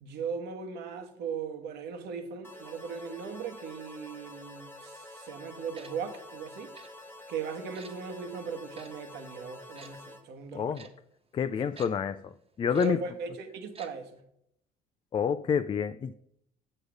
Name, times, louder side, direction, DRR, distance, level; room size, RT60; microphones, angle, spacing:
voice 1, 0.0-6.7 7.3-10.9 12.7-14.2, right 5 dB, 80° right, 1.4 m, -38 dB
sound 1, 2.4-10.2, left 1 dB, 15° left, 1.2 m, -48 dB
Tick-tock, 5.7-5.9 6.7-6.9 7.7-7.9 8.7-8.9 9.8-9.9 10.7-10.9 11.8-11.9 12.7-12.9 13.7-13.9 14.2-14.3, right 4 dB, 35° right, 1.2 m, -49 dB
voice 2, 10.5-10.9 11.3-12.3 12.6-13.0 15.1-16.1, left 7 dB, 30° left, 0.4 m, -28 dB
8.0 x 6.6 x 5.1 m
cardioid pair, 110°, 17 cm